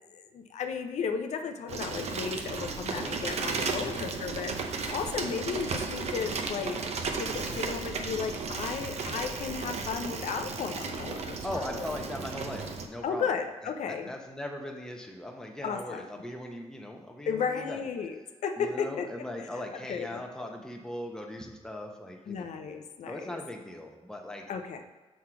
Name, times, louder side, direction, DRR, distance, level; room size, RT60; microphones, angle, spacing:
voice 1, 0.1-6.8 7.1-11.8 13.0-14.1 15.6-16.1 17.3-19.1 19.7-20.2 22.3-23.4 24.5-24.9, left 6 dB, 85° left, 6 dB, 0.5 m, -34 dB
Bicycle, 1.7-12.8, right 4 dB, 65° right, 0.7 m, -34 dB
voice 2, 3.8-4.2 11.4-13.2 13.6-17.8 18.6-22.5 23.1-24.5, left 1 dB, 5° left, 1 dB, 0.9 m, -39 dB
6.2 x 3.7 x 5.8 m, 1.3 s
cardioid pair, 100°, 12 cm